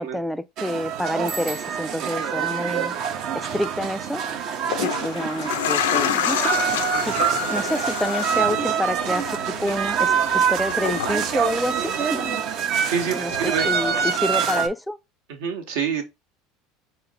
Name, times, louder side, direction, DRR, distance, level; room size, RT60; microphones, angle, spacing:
voice 1, 0.0-3.0 3.3-4.2 4.8-6.6 7.1-7.2 7.5-12.4 13.1-15.0, equal, ahead, 0.3 m, -28 dB
sound 1, 0.6-14.7, right 7 dB, 55° right, 0.6 m, -25 dB
Bicycle bell, 1.3-2.2, right 2 dB, 30° right, 0.8 m, -37 dB
sound 2, 3.5-3.7 4.5-12.5 12.8-13.9 14.3-14.4, left 9 dB, 85° left, 0.4 m, -29 dB
voice 2, 12.9-13.7 15.3-16.0, right 7 dB, 75° right, 0.9 m, -26 dB
4.2 x 2.0 x 3.9 m
hypercardioid pair, 90°, 0 cm